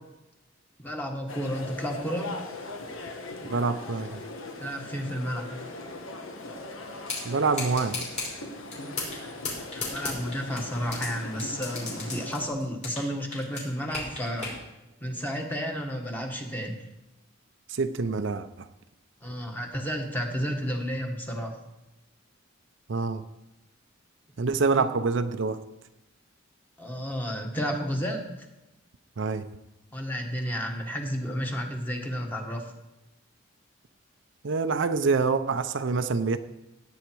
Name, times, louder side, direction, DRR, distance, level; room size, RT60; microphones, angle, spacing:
voice 1, 0.8-2.4 4.6-5.5 9.7-14.5 15.0-16.8 19.2-21.6 24.8-24.9 26.8-28.3 29.9-32.7, equal, 10° left, 2 dB, 1.6 m, -32 dB
sound 1, 1.3-12.5, left 2 dB, 85° left, 1.5 m, -40 dB
voice 2, 3.5-4.2 7.2-8.1 17.7-18.7 22.9-23.2 24.4-25.6 29.2-29.5 34.4-36.4, right 4 dB, 65° right, 9 dB, 0.6 m, -26 dB
sound 2, 7.1-7.2 7.5-8.3 8.7-9.2 9.4-11.1 11.4-13.1 13.3-14.5, left 3 dB, 35° left, 5.6 m, -33 dB
16.5 x 8.8 x 4.7 m, 0.96 s
head